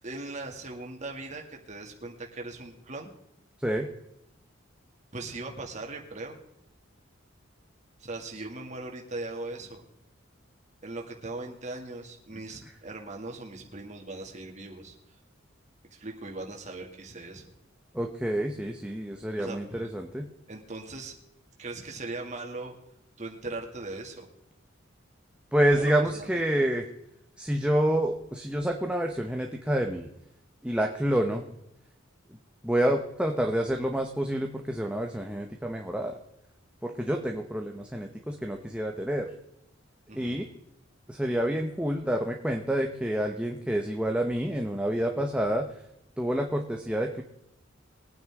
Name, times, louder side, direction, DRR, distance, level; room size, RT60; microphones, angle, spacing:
voice 1, 0.0-3.1 5.1-6.4 8.0-9.8 10.8-15.0 15.9-17.4 19.3-19.9 20.5-21.1 21.6-22.7 23.2-24.2 25.7-26.4 40.1-40.4, right 2 dB, 40° right, 1 dB, 2.4 m, -39 dB
voice 2, 17.9-20.3 25.5-26.9 27.4-30.1 30.6-31.4 32.6-36.2 36.8-39.3 40.1-40.5 41.1-45.7 46.2-47.2, right 1 dB, 5° right, 2 dB, 0.9 m, -28 dB
22.5 x 9.4 x 3.7 m, 0.82 s
head